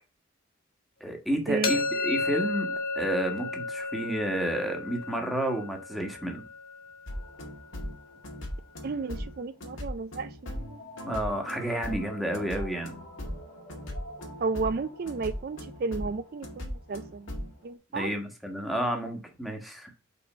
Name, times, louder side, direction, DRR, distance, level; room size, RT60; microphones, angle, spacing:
voice 1, 1.0-6.4 11.0-12.9 17.9-19.9, right 1 dB, ahead, 1.4 m, -31 dB
sound 1, 1.6-7.5, left 3 dB, 45° left, 1.4 m, -33 dB
sound 2, 7.1-17.6, left 1 dB, 80° left, 2.2 m, -39 dB
voice 2, 8.8-10.8 14.4-17.3 17.6-18.1, right 4 dB, 50° right, 0.4 m, -33 dB
5.4 x 4.3 x 5.0 m
head